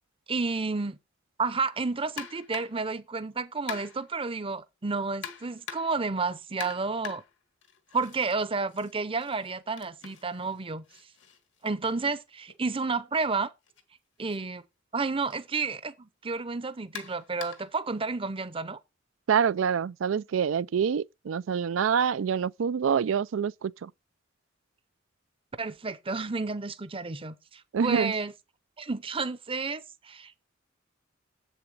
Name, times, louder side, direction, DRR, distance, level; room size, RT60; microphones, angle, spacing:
voice 1, 0.3-1.0 1.4-7.2 7.9-10.8 11.6-13.5 14.2-14.6 14.9-18.8 25.6-28.3 28.8-30.3, right 4 dB, 30° right, 0.7 m, -31 dB
sound 1, 2.2-2.9 3.7-4.2 5.2-6.1 6.6-8.4 8.7-12.6 13.6-13.8 14.3-14.4 15.3-15.4 16.9-17.8, left 8 dB, 65° left, 1.5 m, -44 dB
voice 2, 19.3-23.9 27.7-28.1, right 7 dB, 80° right, 0.4 m, -26 dB
7.9 x 7.1 x 4.8 m
head